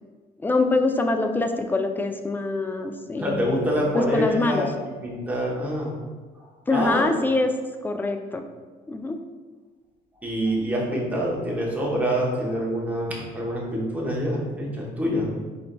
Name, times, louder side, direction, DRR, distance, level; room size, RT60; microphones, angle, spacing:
voice 1, 0.4-4.7 6.7-7.5 7.8-8.4 8.9-9.2, left 2 dB, 10° left, 6 dB, 0.3 m, -24 dB
voice 2, 3.2-4.7 5.0-6.0 6.7-7.1 10.2-15.3, equal, 10° right, -3 dB, 0.9 m, -26 dB
4.4 x 3.9 x 2.2 m, 1.4 s
cardioid pair, 110°, 17 cm